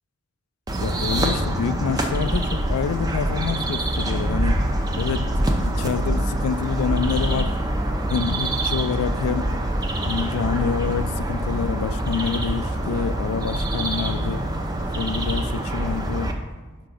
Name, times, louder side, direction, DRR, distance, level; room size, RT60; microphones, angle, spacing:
sound 1, 0.7-16.3, right 1 dB, 20° right, 0.5 m, -25 dB
voice 1, 0.8-4.7 4.9-7.6 8.1-9.5 9.9-14.5 15.0-16.4, left 7 dB, 85° left, 0.3 m, -27 dB
5.6 x 4.0 x 4.9 m
head